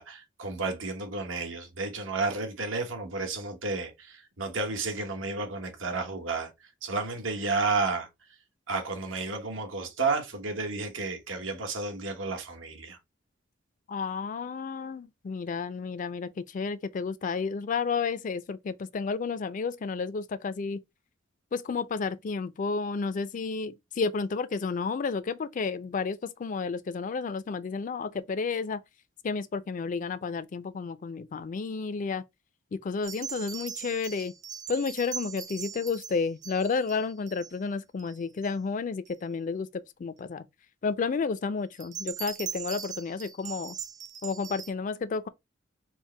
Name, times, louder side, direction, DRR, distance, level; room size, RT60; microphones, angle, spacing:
voice 1, 0.0-6.5 6.8-8.1 8.7-13.0, right 3 dB, 90° right, 1.2 m, -32 dB
voice 2, 13.9-20.8 21.5-28.8 29.2-32.2 32.7-34.3 34.7-40.5 40.8-43.8 44.2-45.3, left 4 dB, 40° left, 0.4 m, -31 dB
sound 1, 33.0-37.6 38.0-38.5 39.1-39.2 41.7-44.7, right 8 dB, 40° right, 0.6 m, -40 dB
4.5 x 2.1 x 4.2 m
head